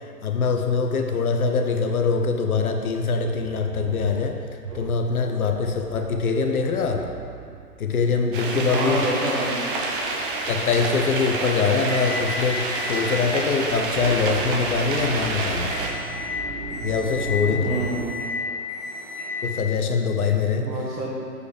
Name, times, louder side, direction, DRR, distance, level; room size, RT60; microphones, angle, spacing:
voice 1, 0.0-4.4 4.7-7.0 7.8-9.0 10.5-15.8 16.8-17.8 19.4-20.7, left 5 dB, 65° left, 4 dB, 0.9 m, -23 dB
sound 1, 2.4-18.1, right 6 dB, 65° right, 0.7 m, -40 dB
sound 2, 8.3-15.9, right 3 dB, 35° right, 0.9 m, -28 dB
voice 2, 8.5-9.6 17.5-18.2 20.6-21.3, right 1 dB, 80° right, -4 dB, 1.4 m, -27 dB
Microwave oven, 11.9-12.2 12.7-19.5, left 4 dB, 5° left, 0.6 m, -34 dB
6.7 x 5.0 x 5.1 m, 2.3 s
figure-of-eight pair, 130°, 47 cm